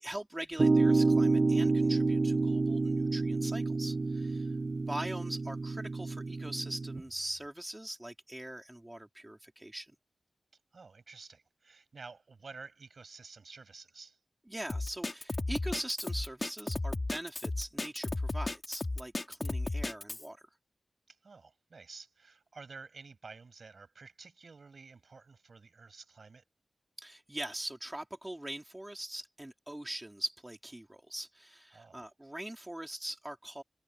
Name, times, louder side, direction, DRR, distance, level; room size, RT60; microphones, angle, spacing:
voice 1, 0.0-9.9 14.5-20.5 27.0-33.6, right 1 dB, 15° right, 3.3 m, -42 dB
sound 1, 0.6-7.0, right 3 dB, 40° right, 0.8 m, -28 dB
voice 2, 10.7-14.2 21.1-26.4 31.7-32.1, right 4 dB, 55° right, 7.9 m, -51 dB
Drum kit, 14.7-20.2, left 2 dB, 30° left, 2.9 m, -34 dB
wide cardioid pair, 115°, 0 cm